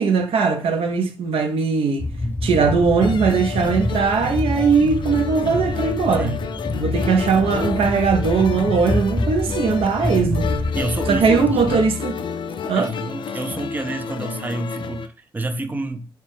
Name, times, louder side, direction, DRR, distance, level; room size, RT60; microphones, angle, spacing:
voice 1, 0.0-2.1 2.4-6.4 6.8-10.5 11.1-12.1 12.7-12.9, right 5 dB, 70° right, 0.5 m, -19 dB
sound 1, 2.0-11.8, left 1 dB, 20° left, 0.7 m, -27 dB
sound 2, 3.0-15.1, left 6 dB, 55° left, 0.4 m, -30 dB
voice 2, 6.2-6.5 10.8-11.5 12.8-16.1, right 2 dB, 20° right, 0.5 m, -28 dB
2.8 x 2.1 x 3.3 m
supercardioid pair, 50°, 10 cm